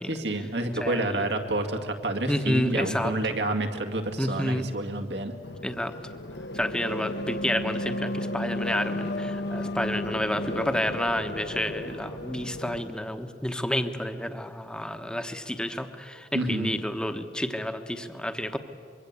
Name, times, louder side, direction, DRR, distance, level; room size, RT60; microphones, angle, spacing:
voice 1, 0.1-5.3 16.3-16.8, right 2 dB, 80° right, 4 dB, 2.2 m, -29 dB
voice 2, 0.7-1.3 2.3-3.1 4.2-4.7 5.6-5.9 6.5-18.6, left 1 dB, 5° left, 8 dB, 1.1 m, -30 dB
sound 1, 5.4-12.8, left 1 dB, 75° left, 1.3 m, -33 dB
24.5 x 23.0 x 8.3 m, 2.4 s
head